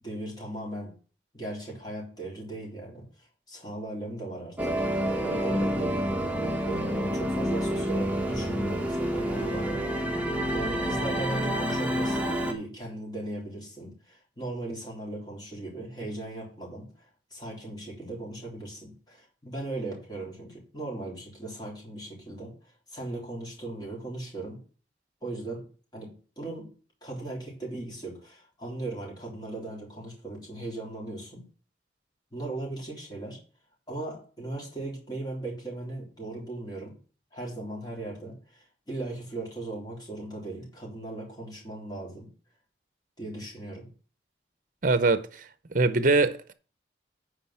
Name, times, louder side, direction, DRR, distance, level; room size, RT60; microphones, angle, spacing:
voice 1, 0.0-1.0 1.3-4.8 5.2-6.0 6.6-10.1 10.5-22.5 22.9-24.6 25.2-26.7 27.0-31.5 32.3-33.4 33.9-37.0 37.3-42.3 43.2-43.9, right 2 dB, 25° left, 3.5 m, -38 dB
sound 1, 4.6-12.5, equal, 10° right, 1.1 m, -28 dB
voice 2, 44.8-45.3 45.7-46.5, right 3 dB, 50° right, 0.8 m, -22 dB
9.0 x 5.0 x 5.8 m
head